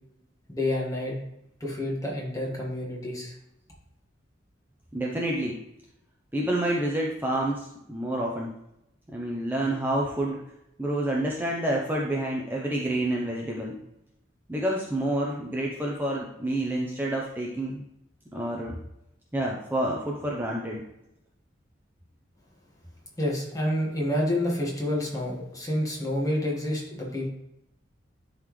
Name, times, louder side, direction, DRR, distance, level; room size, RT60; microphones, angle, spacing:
voice 1, 0.5-1.2 1.6-3.3 23.2-27.3, left 1 dB, 20° left, -2 dB, 1.7 m, -28 dB
voice 2, 4.9-5.6 6.3-8.5 9.1-10.4 10.8-13.8 14.5-17.8 18.3-18.8 19.3-20.8, right 1 dB, 10° right, -2 dB, 0.7 m, -28 dB
11.0 x 4.0 x 3.2 m, 0.83 s
head